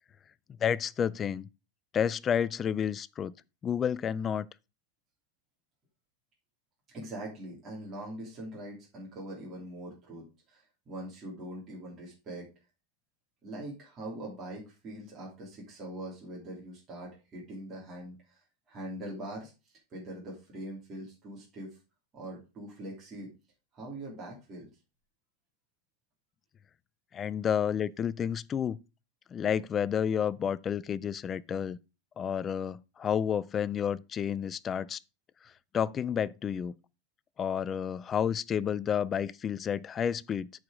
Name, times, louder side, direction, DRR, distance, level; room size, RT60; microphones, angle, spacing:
voice 1, 0.6-1.5 1.9-3.3 3.6-4.5 27.1-28.8 29.3-31.8 32.2-35.0 35.7-36.7 37.4-40.5, left 8 dB, 20° left, 0.3 m, -30 dB
voice 2, 6.9-12.5 13.4-18.4 18.7-21.8 22.1-23.3 23.7-24.7, right 1 dB, 20° right, 2.8 m, -42 dB
8.5 x 4.8 x 5.0 m
supercardioid pair, 170°, 0 cm